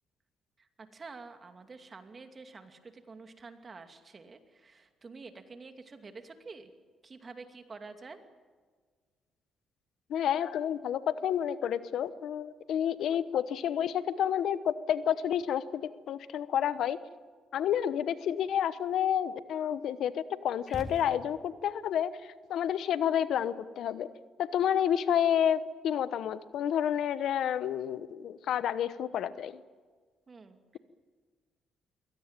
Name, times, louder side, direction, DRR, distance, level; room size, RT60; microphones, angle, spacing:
voice 1, 0.6-6.7 7.0-8.2 30.3-30.8, right 4 dB, 35° right, 7 dB, 2.6 m, -48 dB
voice 2, 10.1-17.0 17.5-24.1 24.4-29.6, left 9 dB, 75° left, 14 dB, 1.0 m, -30 dB
sound 1, 20.7-21.7, left 3 dB, 35° left, 2.5 m, -43 dB
23.0 x 18.0 x 9.0 m, 1.6 s
cardioid pair, 90°, 0 cm